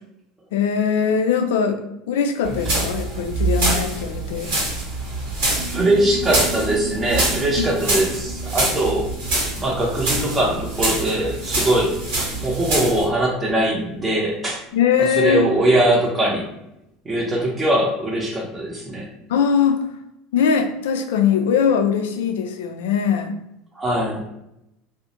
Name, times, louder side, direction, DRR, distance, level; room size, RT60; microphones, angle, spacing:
voice 1, 0.5-4.5 14.7-15.5 19.3-19.9 20.3-23.3, left 7 dB, 70° left, 6 dB, 0.3 m, -21 dB
sound 1, 2.4-13.0, right 2 dB, 65° right, 1.1 m, -25 dB
Piano, 5.5-16.3, right 4 dB, 90° right, 0.7 m, -39 dB
voice 2, 5.7-9.1 9.6-12.0 12.4-14.6 15.0-16.5 17.0-19.1 23.7-24.2, right 1 dB, 20° right, -3 dB, 0.7 m, -21 dB
2.4 x 2.0 x 2.7 m, 0.85 s
hypercardioid pair, 75°, 0 cm